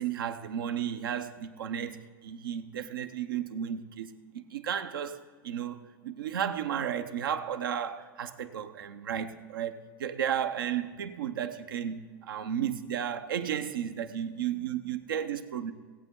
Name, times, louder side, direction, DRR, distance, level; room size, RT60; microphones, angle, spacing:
voice 1, 0.0-2.0 2.2-9.7 10.0-15.7, right 9 dB, 80° right, 0.8 m, -33 dB
18.5 x 8.3 x 3.8 m
hypercardioid pair, 100°, 11 cm